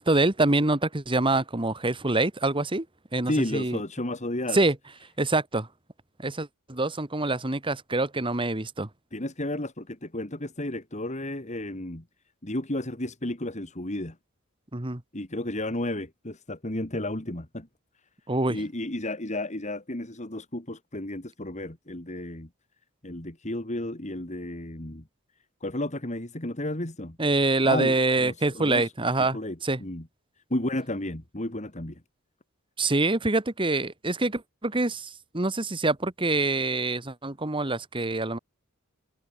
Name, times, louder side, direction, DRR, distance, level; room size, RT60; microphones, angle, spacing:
voice 1, 0.0-2.8 3.1-3.8 4.5-4.7 5.2-5.7 6.2-8.9 14.7-15.0 18.3-18.6 27.2-29.8 32.8-38.4, right 2 dB, 25° right, 1.5 m, -25 dB
voice 2, 3.3-4.7 9.1-12.0 12.4-14.2 15.1-17.7 18.5-22.5 23.0-25.1 25.6-27.2 27.6-28.9 29.3-30.1 30.5-32.0, left 1 dB, 30° left, 2.5 m, -32 dB
head